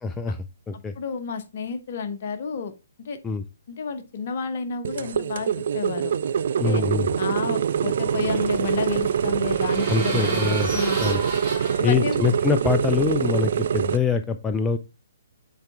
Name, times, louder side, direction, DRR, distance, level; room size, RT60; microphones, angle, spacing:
voice 1, 0.0-0.9 3.2-3.4 6.6-7.1 9.9-10.7 11.0-11.2 11.8-14.8, left 5 dB, 10° left, 8 dB, 0.4 m, -24 dB
voice 2, 1.0-2.7 3.0-3.2 3.7-5.5 5.7-6.1 6.6-6.8 7.2-11.0 11.8-12.3, left 5 dB, 45° left, 8 dB, 1.0 m, -31 dB
sound 1, 4.8-14.0, right 8 dB, 50° right, 0.4 m, -24 dB
sound 2, 7.6-13.2, right 3 dB, 20° right, 3.0 m, -34 dB
8.0 x 4.3 x 3.5 m, 0.28 s
figure-of-eight pair, 130°, 0 cm